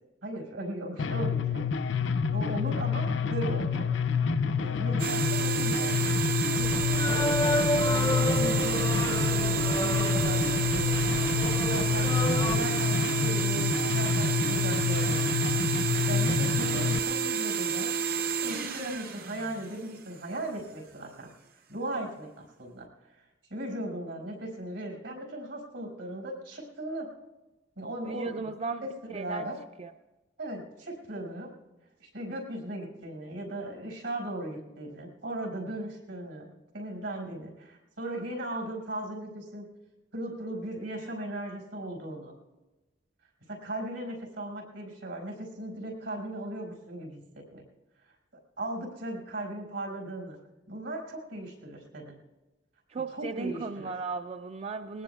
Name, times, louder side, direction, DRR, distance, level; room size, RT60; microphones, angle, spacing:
voice 1, 0.2-1.6 2.3-3.9 4.6-6.2 6.6-7.3 7.6-11.0 11.5-12.1 12.5-15.3 15.7-17.9 18.3-21.3 21.7-22.9 23.1-23.2 23.5-27.1 27.8-28.5 28.8-29.6 30.4-31.5 32.0-39.7 40.1-42.4 43.5-47.6 48.6-50.4 50.7-52.2 53.1-54.0, right 1 dB, 80° right, 0 dB, 5.3 m, -37 dB
sound 1, 1.0-17.0, left 6 dB, 75° left, 0.5 m, -28 dB
sound 2, 5.0-20.2, right 6 dB, 55° right, 0.7 m, -30 dB
sound 3, 6.6-12.6, left 2 dB, 25° left, 0.5 m, -31 dB
voice 2, 28.0-28.8 29.1-29.5 29.8-29.9 52.9-55.0, right 4 dB, 35° right, 8 dB, 0.3 m, -35 dB
20.5 x 20.0 x 2.3 m, 1.1 s
head